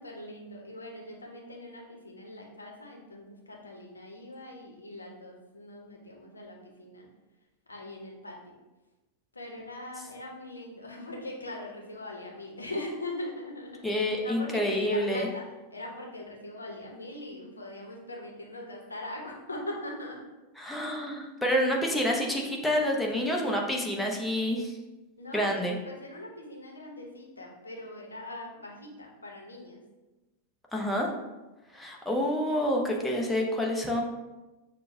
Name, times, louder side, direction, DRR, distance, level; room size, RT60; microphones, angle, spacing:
voice 1, 0.0-7.1 7.7-8.6 9.3-20.3 25.2-29.8, left 1 dB, 80° left, 0 dB, 0.8 m, -41 dB
voice 2, 13.8-15.3 20.6-24.8 25.3-25.7 30.7-31.1 31.7-34.0, equal, 5° left, -1 dB, 0.7 m, -28 dB
6.1 x 2.3 x 3.3 m, 1.1 s
figure-of-eight pair, 90°, 0 cm